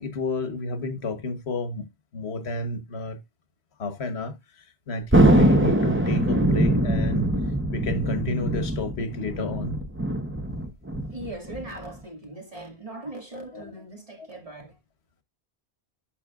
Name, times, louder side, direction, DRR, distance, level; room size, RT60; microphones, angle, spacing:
voice 1, 0.0-1.9 2.1-3.2 3.8-7.3 7.7-9.8 13.5-13.7 14.2-14.3, left 3 dB, 80° left, 1.5 m, -31 dB
Thunder, 5.1-12.0, right 1 dB, 15° right, 0.8 m, -22 dB
voice 2, 11.1-14.8, right 2 dB, 35° right, 2.3 m, -39 dB
12.0 x 5.2 x 2.4 m
omnidirectional pair, 1.1 m